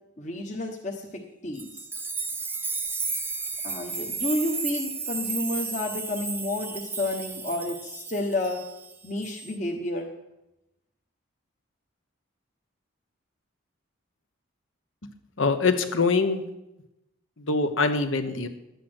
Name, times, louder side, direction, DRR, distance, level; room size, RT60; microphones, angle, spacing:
voice 1, 0.2-1.1 1.4-1.7 3.6-8.6 9.0-10.1, left 1 dB, 35° left, 0 dB, 1.1 m, -30 dB
sound 1, 1.6-8.9 9.2-9.6, right 4 dB, 10° right, 0.6 m, -33 dB
voice 2, 15.4-16.4 17.4-18.5, left 4 dB, 75° left, 8 dB, 1.1 m, -24 dB
11.5 x 8.4 x 6.1 m, 0.91 s
head